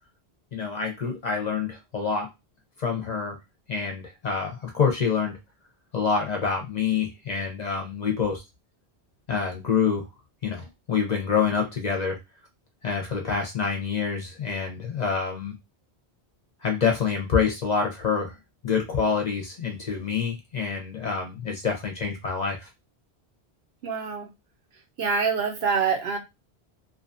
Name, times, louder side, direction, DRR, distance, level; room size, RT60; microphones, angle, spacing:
voice 1, 0.5-2.3 2.8-3.3 3.7-5.3 5.9-8.4 9.3-10.1 10.4-12.2 12.8-15.5 16.6-18.3 18.6-22.7, left 6 dB, 50° left, 0.6 m, -26 dB
voice 2, 23.8-24.3 25.0-26.2, right 5 dB, 70° right, 0.9 m, -25 dB
2.5 x 2.3 x 2.5 m
omnidirectional pair, 1.1 m